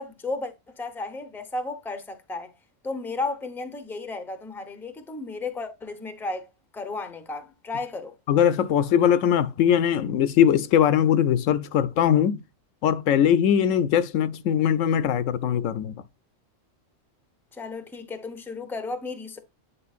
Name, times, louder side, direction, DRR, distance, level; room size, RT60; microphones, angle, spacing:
voice 1, 0.0-2.5 2.8-6.4 6.7-8.1 17.5-19.4, left 3 dB, ahead, 0.6 m, -33 dB
voice 2, 8.3-12.4 12.8-15.9, left 9 dB, 80° left, 1.0 m, -21 dB
9.8 x 5.0 x 2.4 m
omnidirectional pair, 1.3 m